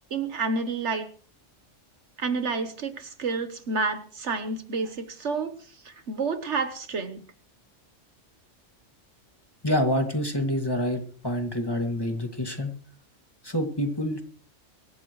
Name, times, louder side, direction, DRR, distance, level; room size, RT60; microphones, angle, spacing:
voice 1, 0.1-1.1 2.2-7.2, right 4 dB, 65° right, 10 dB, 1.4 m, -29 dB
voice 2, 9.6-12.7 13.4-14.2, equal, 20° left, 4 dB, 2.3 m, -27 dB
24.0 x 13.5 x 3.2 m, 0.42 s
omnidirectional pair, 1.3 m